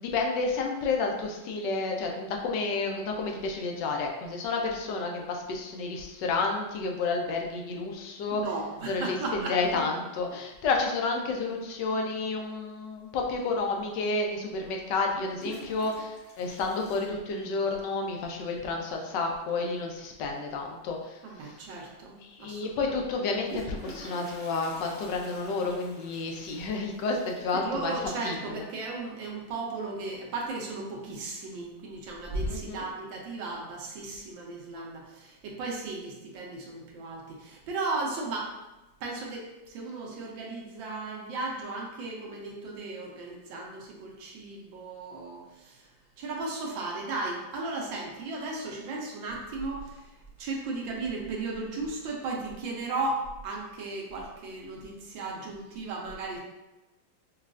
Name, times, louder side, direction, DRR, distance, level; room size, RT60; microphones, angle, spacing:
voice 1, 0.0-8.4 8.9-21.5 22.2-27.9 28.2-28.6 32.5-32.8, left 3 dB, 75° left, 1 dB, 1.2 m, -30 dB
voice 2, 8.3-9.6 21.2-22.7 27.5-38.5 39.0-45.9 46.2-50.1 50.4-56.4, right 3 dB, 90° right, -1 dB, 1.5 m, -36 dB
Toilet flush, 13.8-13.9 15.0-17.9 18.1-18.2 18.5-18.6 18.9-19.3 21.0-21.1 21.4-21.5 23.1-29.8 30.1-30.5 30.9-31.5 31.9-32.9, right 1 dB, 10° left, 0.5 m, -43 dB
6.3 x 2.3 x 2.4 m, 1.0 s
omnidirectional pair, 2.0 m